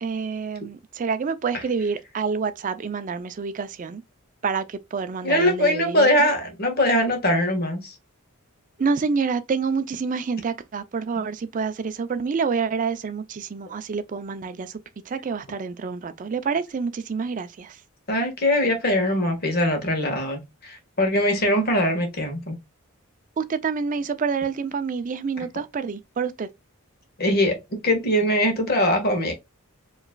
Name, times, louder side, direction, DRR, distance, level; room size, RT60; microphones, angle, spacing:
voice 1, 0.0-4.0 4.4-6.3 8.8-14.8 15.1-17.8 23.4-26.5, right 5 dB, 35° right, 0.4 m, -27 dB
voice 2, 5.2-7.9 18.1-22.6 27.2-29.3, left 1 dB, 45° left, 1.5 m, -22 dB
4.8 x 3.1 x 2.2 m
head